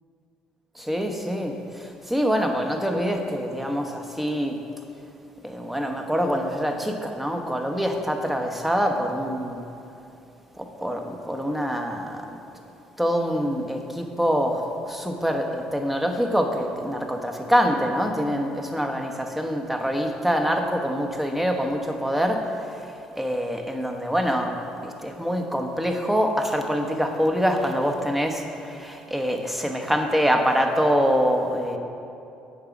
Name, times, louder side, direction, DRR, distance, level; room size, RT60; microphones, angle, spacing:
voice 1, 0.8-4.6 5.4-9.6 10.6-12.3 13.0-31.8, equal, 5° right, 3 dB, 1.0 m, -25 dB
8.7 x 4.9 x 5.9 m, 2.7 s
hypercardioid pair, 60°, 4 cm